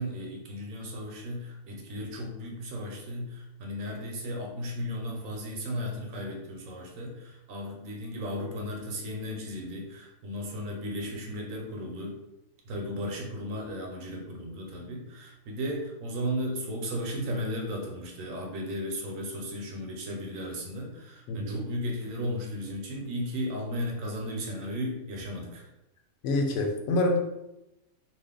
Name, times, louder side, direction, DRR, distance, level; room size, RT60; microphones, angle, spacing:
voice 1, 0.0-12.2 12.7-25.7, equal, 75° right, 1 dB, 1.1 m, -35 dB
voice 2, 21.3-21.6 26.2-27.2, left 2 dB, 80° left, 3 dB, 1.0 m, -26 dB
2.6 x 2.5 x 3.5 m, 0.91 s
omnidirectional pair, 1.4 m